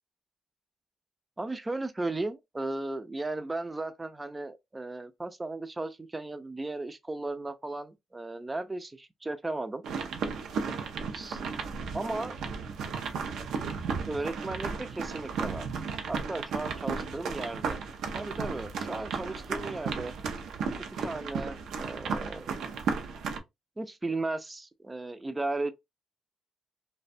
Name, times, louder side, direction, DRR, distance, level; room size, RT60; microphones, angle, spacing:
voice 1, 1.4-9.8 11.1-11.4 11.9-12.4 14.1-15.7 16.1-17.8 18.1-20.1 21.0-22.5 23.8-25.7, right 2 dB, 20° right, 0.4 m, -35 dB
sound 1, 9.8-23.4, right 5 dB, 75° right, 0.5 m, -34 dB
2.5 x 2.1 x 2.4 m
cardioid pair, 90°, 0 cm